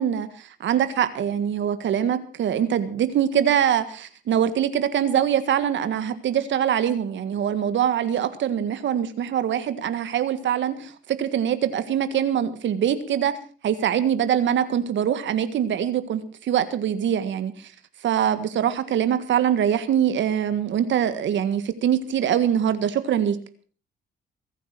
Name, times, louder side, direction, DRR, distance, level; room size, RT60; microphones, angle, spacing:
voice 1, 0.0-13.3 13.6-17.7 18.0-23.4, right 9 dB, 70° right, 11 dB, 1.7 m, -23 dB
22.0 x 9.4 x 6.1 m, 0.41 s
cardioid pair, 90°, 20 cm